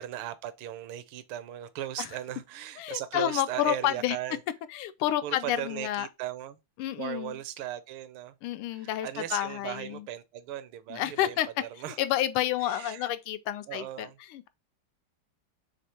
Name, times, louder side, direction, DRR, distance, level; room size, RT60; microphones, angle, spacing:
voice 1, 0.0-4.4 5.2-6.6 7.0-8.3 8.7-12.0 12.6-13.1 13.7-14.2, right 12 dB, 80° right, 1.4 m, -37 dB
voice 2, 2.8-4.2 4.7-6.1 6.8-7.3 8.4-10.1 10.9-11.5 12.0-14.5, left 12 dB, 90° left, 1.5 m, -30 dB
3.7 x 3.4 x 4.2 m
omnidirectional pair, 2.3 m